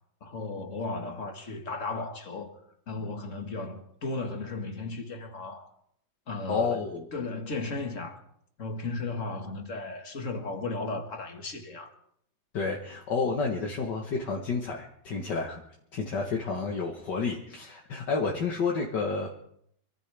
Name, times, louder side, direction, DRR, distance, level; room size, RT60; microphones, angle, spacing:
voice 1, 0.2-2.6 2.9-5.7 6.3-6.8 7.1-8.2 8.6-11.9, left 3 dB, 40° left, 1.9 m, -35 dB
voice 2, 6.5-7.1 12.5-15.6 15.9-19.4, left 4 dB, 65° left, 2.1 m, -30 dB
25.5 x 14.5 x 3.5 m
omnidirectional pair, 2.1 m